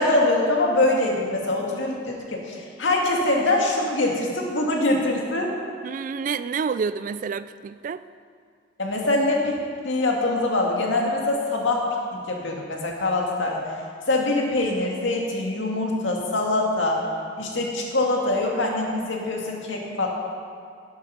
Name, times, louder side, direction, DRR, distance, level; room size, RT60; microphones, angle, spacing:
voice 1, 0.0-5.5 8.8-9.5 9.8-11.8 12.1-13.6 14.1-17.0 17.4-20.1, left 2 dB, 85° left, 0 dB, 2.0 m, -23 dB
voice 2, 5.8-8.0, right 5 dB, 45° right, 14 dB, 0.3 m, -28 dB
11.5 x 8.6 x 5.8 m, 2.2 s
head